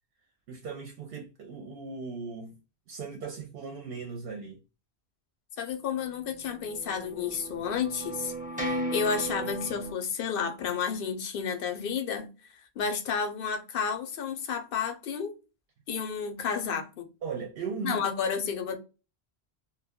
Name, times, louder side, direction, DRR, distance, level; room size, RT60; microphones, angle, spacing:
voice 1, 0.5-2.6 2.9-4.6 17.2-18.0, right 5 dB, 65° right, 0.7 m, -38 dB
voice 2, 5.6-8.3 8.6-12.3 12.8-15.3 15.9-17.0 17.8-18.8, left 6 dB, 65° left, 0.8 m, -31 dB
sound 1, 6.3-9.9, right 1 dB, 10° right, 0.6 m, -35 dB
2.2 x 2.1 x 3.4 m
omnidirectional pair, 1.1 m